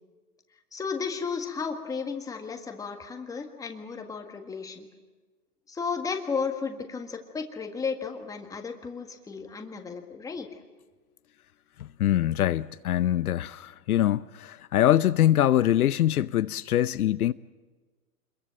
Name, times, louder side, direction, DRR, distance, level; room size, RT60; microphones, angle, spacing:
voice 1, 0.7-4.9 5.7-10.5, left 5 dB, 5° left, 1.7 m, -34 dB
voice 2, 11.8-17.3, left 12 dB, 70° left, 0.8 m, -24 dB
26.5 x 22.5 x 7.6 m
hypercardioid pair, 145°, 46 cm